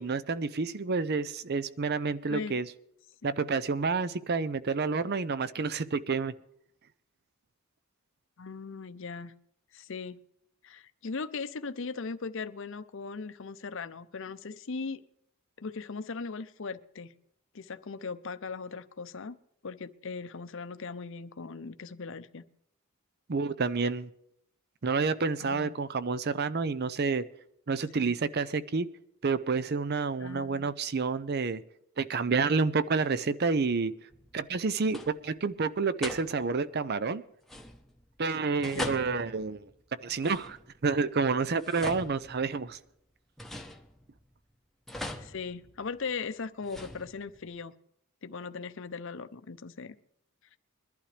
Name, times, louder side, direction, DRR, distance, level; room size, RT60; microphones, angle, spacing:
voice 1, 0.0-2.7 3.2-6.3 23.3-24.1 24.8-27.2 27.7-28.9 29.2-31.6 32.0-33.9 34.3-37.2 38.2-39.6 40.0-40.6 40.8-42.8, right 4 dB, 45° right, 15 dB, 0.6 m, -29 dB
voice 2, 8.4-9.3 9.7-10.2 10.6-15.0 15.6-17.1 17.5-19.4 19.6-22.4 25.4-25.7 27.9-28.1 30.2-30.7 38.7-39.0 45.2-47.7 48.2-49.9, left 4 dB, 60° left, 12 dB, 0.7 m, -39 dB
sound 1, 34.1-34.6 34.8-35.4 36.0-36.7 37.4-38.1 38.6-40.9 41.5-42.8 43.4-44.3 44.9-46.1 46.6-47.5, left 1 dB, ahead, 0.9 m, -42 dB
22.5 x 11.5 x 3.3 m, 0.73 s
head